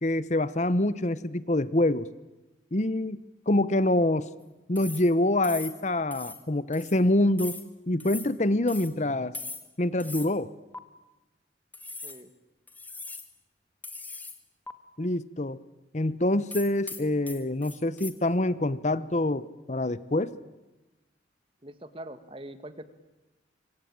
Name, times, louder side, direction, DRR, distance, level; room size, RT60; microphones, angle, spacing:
voice 1, 0.0-2.1 2.7-4.3 4.7-7.6 7.9-9.4 9.8-10.5 15.0-15.6 15.9-20.3, left 1 dB, 40° left, 16 dB, 1.0 m, -26 dB
sound 1, 4.8-5.1 5.4-5.8 6.1-6.4 6.7-7.0 7.4-7.7 8.0-8.3 8.7-8.9 9.3-9.7 10.0-10.3 10.7-10.8 11.7-12.2 12.7-13.3 13.8-14.4 14.7-14.8 16.5-18.1, left 3 dB, 10° left, 1.9 m, -40 dB
voice 2, 21.6-22.8, right 1 dB, 30° right, 12 dB, 2.0 m, -43 dB
26.5 x 25.5 x 8.9 m, 1.1 s
head